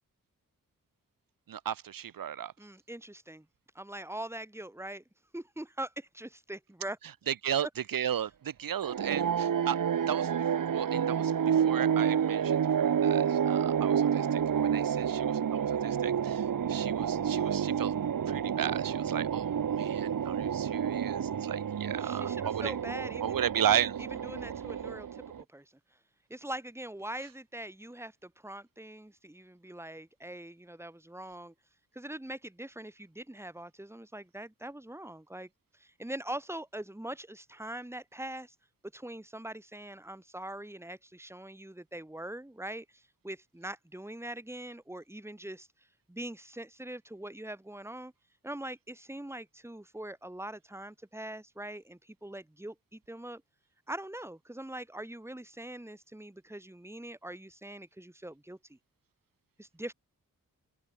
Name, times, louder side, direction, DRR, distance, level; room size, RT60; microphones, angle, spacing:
voice 1, 1.5-2.5 7.3-9.8 10.1-10.3 10.6-16.4 16.7-22.7 23.2-24.0, right 9 dB, 90° right, 1.1 m, -35 dB
voice 2, 2.6-3.4 3.7-5.0 5.3-7.0 7.6-7.7 22.0-23.4 24.0-25.2 25.5-25.6 26.3-31.5 31.9-35.5 35.8-38.5 38.9-45.7 46.1-48.1 48.4-53.4 53.9-58.8 59.6-59.9, right 1 dB, 10° right, 5.0 m, -42 dB
sound 1, 8.8-25.4, right 8 dB, 70° right, 1.5 m, -29 dB
open air
wide cardioid pair, 140°, 33 cm